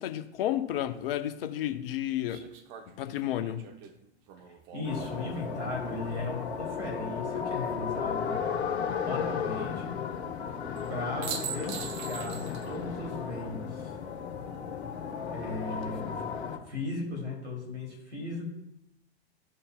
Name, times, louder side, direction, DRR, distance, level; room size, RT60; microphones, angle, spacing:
voice 1, 0.0-2.5 2.9-3.7, left 12 dB, 55° left, 9 dB, 0.8 m, -32 dB
sound 1, 0.8-0.9 2.3-5.5 7.3-8.0 10.8-10.9 11.2-12.8 13.1-13.2 15.5-16.0, right 8 dB, 45° right, 0.9 m, -42 dB
voice 2, 4.7-8.5 9.0-10.0 10.9-13.9 15.3-16.1 16.7-18.5, left 2 dB, 85° right, -1 dB, 2.9 m, -37 dB
sound 2, 4.8-16.6, left 7 dB, 75° left, 1.2 m, -34 dB
13.0 x 5.5 x 2.3 m, 0.84 s
figure-of-eight pair, 95°, 33 cm